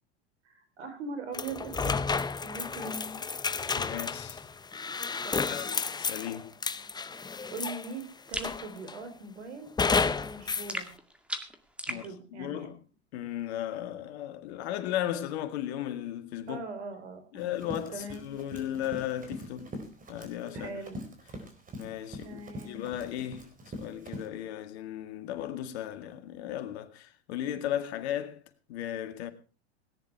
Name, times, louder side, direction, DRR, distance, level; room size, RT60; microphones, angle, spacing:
voice 1, 0.4-2.0 2.4-3.2 5.2-5.7 7.1-9.7 10.2-10.9 11.9-12.7 16.5-17.5 17.9-18.3 20.5-21.0 22.2-22.8, right 3 dB, 85° right, 4.1 m, -41 dB
sound 1, 1.3-8.0 8.4-9.0 9.8-10.7, left 5 dB, 10° left, 0.7 m, -31 dB
voice 2, 3.7-4.4 5.5-6.5 11.9-12.8 13.1-16.6 17.3-19.7 20.1-20.8 21.8-22.4 22.7-28.4 28.7-29.3, left 11 dB, 70° left, 2.0 m, -36 dB
sound 2, 8.3-8.6 10.7-12.1, equal, 5° right, 2.0 m, -36 dB
Run, 17.4-24.3, equal, 25° right, 4.4 m, -44 dB
18.0 x 10.0 x 4.7 m
hypercardioid pair, 95°, 33 cm